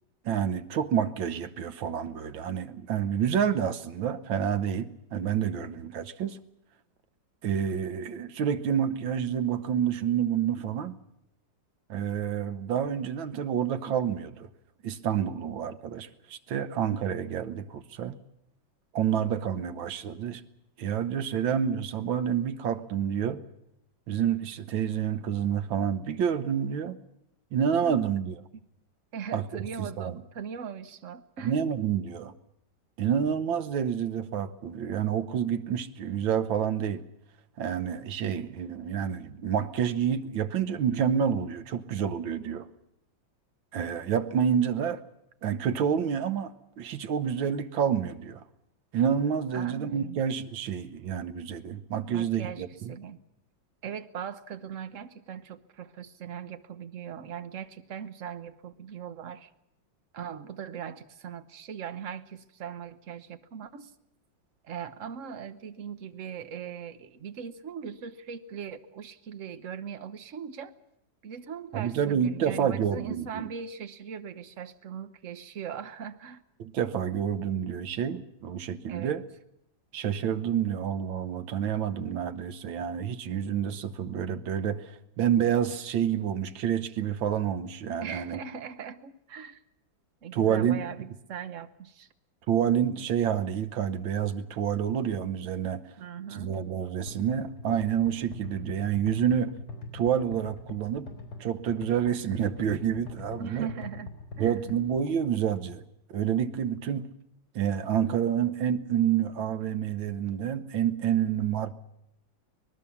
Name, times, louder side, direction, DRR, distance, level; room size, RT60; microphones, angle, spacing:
voice 1, 0.2-6.4 7.4-11.0 11.9-14.5 14.8-18.1 18.9-20.4 20.8-23.4 24.1-27.0 27.5-28.3 29.3-29.4 29.8-30.1 31.4-32.3 33.0-37.0 37.6-42.7 43.7-45.0 45.4-48.4 48.9-52.9 71.7-73.5 76.6-79.2 79.9-88.4 90.3-90.8 92.5-95.8 96.4-99.5 99.9-101.1 101.4-103.7 104.4-105.8 106.1-107.1 107.5-111.7, right 8 dB, 85° right, 1.8 m, -28 dB
voice 2, 29.1-31.5 49.5-50.2 52.0-53.2 53.8-59.5 60.1-63.9 64.6-70.8 71.2-76.4 78.9-79.2 88.0-89.6 90.2-92.1 96.0-96.6 103.4-104.6, right 7 dB, 50° right, 1.2 m, -40 dB
sound 1, 97.1-105.0, left 3 dB, 65° left, 4.4 m, -42 dB
25.0 x 19.0 x 7.1 m
omnidirectional pair, 2.1 m